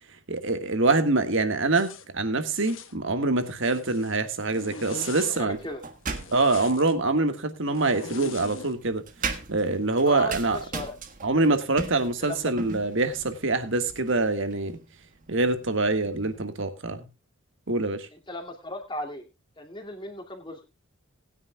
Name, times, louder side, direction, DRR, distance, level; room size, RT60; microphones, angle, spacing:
voice 1, 0.3-5.6 6.3-9.0 9.5-10.6 11.2-14.8 15.3-17.1 17.7-18.1, right 3 dB, 55° right, 1.6 m, -25 dB
Zipper (clothing), 1.7-2.1 2.5-3.0 3.4-4.1 4.5-5.4 6.1-6.9 7.7-8.7, left 4 dB, 60° left, 1.2 m, -41 dB
voice 2, 5.3-5.8 10.0-11.0 12.0-12.5 18.1-19.2 19.6-20.6, left 1 dB, 20° left, 2.4 m, -37 dB
sound 1, 5.5-6.7 7.8-16.5, right 4 dB, 35° right, 1.5 m, -39 dB
19.5 x 9.7 x 2.3 m
head